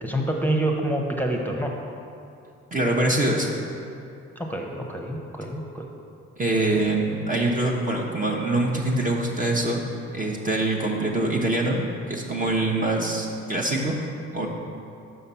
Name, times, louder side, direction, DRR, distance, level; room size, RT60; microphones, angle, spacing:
voice 1, 0.0-1.7 4.4-5.9, right 1 dB, 5° left, 0 dB, 1.0 m, -27 dB
voice 2, 2.7-3.6 6.4-9.8 10.1-14.0 14.3-14.5, right 2 dB, 25° right, -2 dB, 1.0 m, -24 dB
5.7 x 5.2 x 5.6 m, 2.6 s
hypercardioid pair, 55°, 32 cm